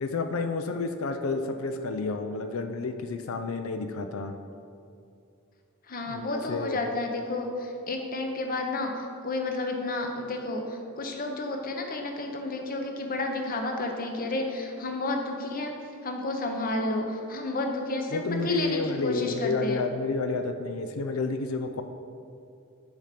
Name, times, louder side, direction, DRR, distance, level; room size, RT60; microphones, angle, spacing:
voice 1, 0.0-4.3 6.1-6.8 18.1-21.8, left 3 dB, 75° left, 6 dB, 0.5 m, -30 dB
voice 2, 5.9-15.7 16.0-19.8, left 2 dB, 45° left, 3 dB, 0.9 m, -31 dB
7.1 x 5.0 x 5.7 m, 2.4 s
head